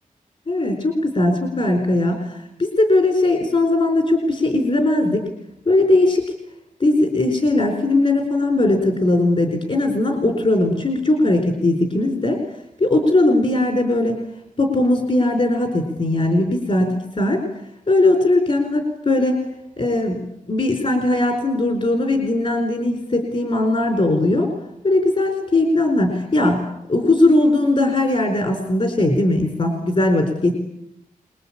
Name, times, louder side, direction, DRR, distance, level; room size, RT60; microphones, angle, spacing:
voice 1, 0.5-5.2 5.7-6.2 6.8-12.4 12.8-14.2 14.6-17.4 17.9-19.4 19.8-20.2 20.5-24.5 24.8-26.6 26.9-30.5, left 2 dB, 45° left, 4 dB, 4.6 m, -19 dB
25.5 x 21.5 x 8.9 m, 0.77 s
wide cardioid pair, 135°, 14 cm